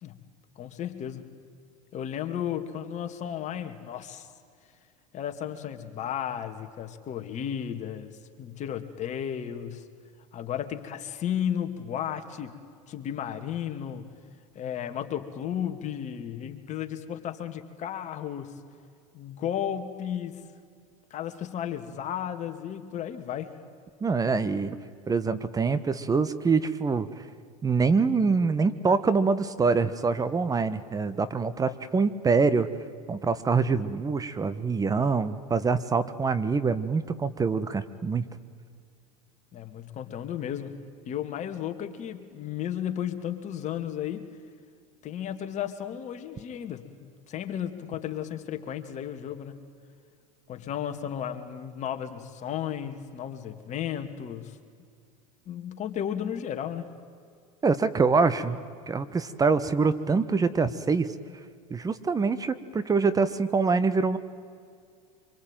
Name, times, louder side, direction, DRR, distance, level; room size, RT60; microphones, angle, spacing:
voice 1, 0.6-1.2 1.9-4.3 5.1-9.8 10.3-12.5 12.9-14.1 14.5-18.5 19.1-20.5 21.1-23.5 39.5-40.8 41.1-44.3 45.0-49.6 50.5-54.6 55.5-56.9, left 9 dB, 40° left, 6 dB, 2.4 m, -34 dB
voice 2, 24.0-24.8 25.1-27.1 27.6-32.7 33.1-38.2 57.6-58.6 58.9-61.1 61.7-64.2, right 4 dB, 20° right, 13 dB, 1.2 m, -25 dB
25.5 x 23.5 x 9.1 m, 2.2 s
hypercardioid pair, 105°, 19 cm